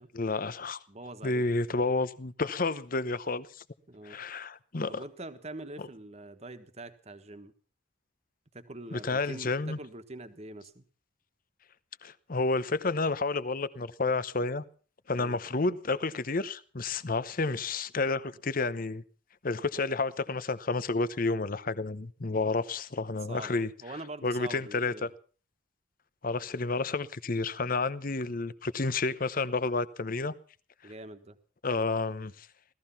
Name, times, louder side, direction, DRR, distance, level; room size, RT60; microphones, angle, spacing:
voice 1, 0.1-0.8 1.2-3.5 4.0-5.0 8.9-9.8 12.0-14.6 15.1-19.0 19.4-23.7 24.2-25.1 26.2-30.3 31.6-32.5, left 3 dB, 45° left, 0.8 m, -30 dB
voice 2, 0.9-1.4 3.9-4.2 4.9-7.5 8.5-10.8 15.2-15.4 23.3-25.1 30.8-31.4, right 2 dB, 35° right, 1.4 m, -44 dB
17.0 x 14.0 x 5.7 m
head